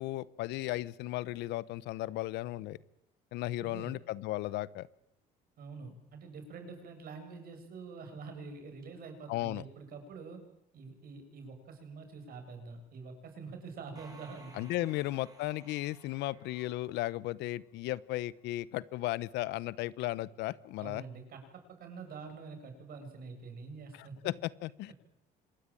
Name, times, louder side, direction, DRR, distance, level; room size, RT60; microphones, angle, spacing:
voice 1, 0.0-2.8 3.3-4.9 9.3-9.6 14.5-21.0 23.9-24.9, left 16 dB, 85° left, 20 dB, 0.9 m, -35 dB
voice 2, 3.6-4.0 5.6-10.4 10.7-15.0 20.8-24.2, right 4 dB, 60° right, 6 dB, 7.9 m, -46 dB
sound 1, 13.9-17.6, right 2 dB, 20° right, 6.4 m, -57 dB
26.0 x 21.5 x 9.1 m, 0.79 s
cardioid pair, 110°, 17 cm